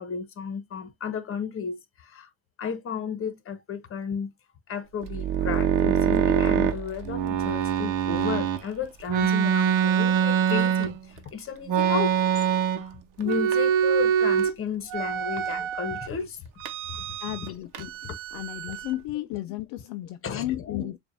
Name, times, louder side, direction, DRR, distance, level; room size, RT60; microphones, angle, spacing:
voice 1, 0.0-1.8 2.1-2.3 2.6-4.3 4.7-11.0 11.3-12.2 13.2-16.4 16.9-17.1 18.0-18.2 20.2-20.9, left 6 dB, 35° left, 1.2 m, -33 dB
sound 1, 5.0-8.6 9.1-11.2 11.7-12.9 13.2-14.5 14.9-16.1 16.6-17.5 17.7-18.9, right 8 dB, 60° right, 0.9 m, -24 dB
voice 2, 17.2-17.9 18.3-21.0, left 15 dB, 65° left, 0.5 m, -33 dB
6.8 x 2.6 x 2.6 m
supercardioid pair, 90°, 36 cm